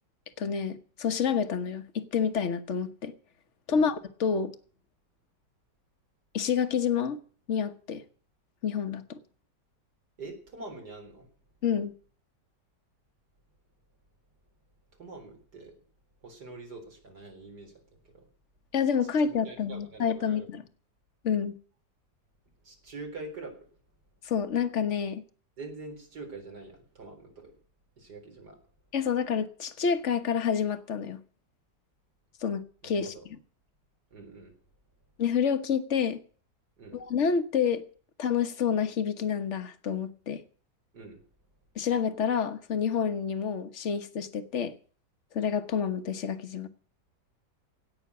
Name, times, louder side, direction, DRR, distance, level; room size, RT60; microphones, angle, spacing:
voice 1, 0.4-3.1 3.7-4.5 6.3-7.2 7.5-8.0 8.6-9.2 11.6-11.9 18.7-20.6 21.2-21.6 24.2-25.2 28.9-31.2 32.4-33.4 35.2-36.2 36.9-37.8 38.2-40.4 41.7-44.7 45.3-46.7, left 7 dB, 45° left, 1.4 m, -28 dB
voice 2, 10.2-11.3 15.0-15.7 16.2-18.3 19.3-20.5 22.6-23.6 25.6-27.5 28.0-28.6 32.8-33.2 34.1-34.5 36.8-37.0 40.9-41.2, right 3 dB, 65° right, 4.5 m, -44 dB
17.5 x 6.5 x 9.5 m
omnidirectional pair, 1.9 m